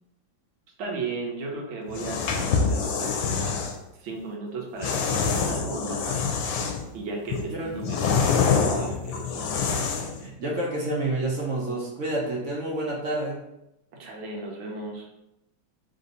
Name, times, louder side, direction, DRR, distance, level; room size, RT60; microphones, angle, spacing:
voice 1, 0.8-3.6 4.0-6.2 6.9-9.4 14.0-15.1, right 3 dB, 85° right, 0 dB, 1.6 m, -35 dB
sound 1, 1.9-3.8 4.8-6.9 7.3-10.2, left 5 dB, 80° left, 1.4 m, -26 dB
voice 2, 10.2-13.4, right 1 dB, 60° right, -4 dB, 0.8 m, -29 dB
3.7 x 2.6 x 4.0 m, 0.87 s
omnidirectional pair, 2.1 m